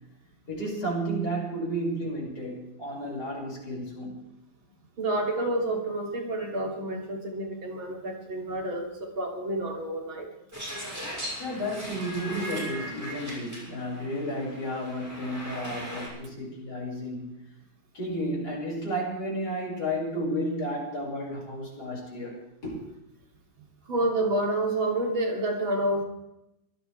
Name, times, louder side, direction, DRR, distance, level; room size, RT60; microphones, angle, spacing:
voice 1, 0.5-4.2 11.4-17.3 17.9-22.8, equal, 50° left, -3 dB, 6.6 m, -32 dB
voice 2, 5.0-10.3 23.9-26.0, right 1 dB, 80° right, 0 dB, 3.9 m, -29 dB
sound 1, 10.5-16.1, equal, 10° right, 6.5 m, -38 dB
24.0 x 17.0 x 3.4 m, 0.88 s
omnidirectional pair, 2.2 m